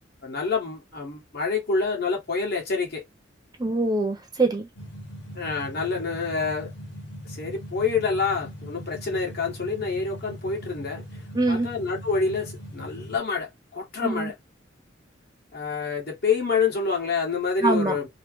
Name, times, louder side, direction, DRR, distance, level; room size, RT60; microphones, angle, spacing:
voice 1, 0.2-3.0 5.3-6.7 7.2-11.2 11.5-14.3 15.5-18.1, left 4 dB, 55° left, 1.5 m, -27 dB
voice 2, 3.6-4.7 11.3-11.7 14.0-14.3 17.6-18.0, right 2 dB, 20° right, 0.7 m, -24 dB
sound 1, 4.8-13.2, equal, 80° left, 1.4 m, -40 dB
3.1 x 2.0 x 3.2 m
head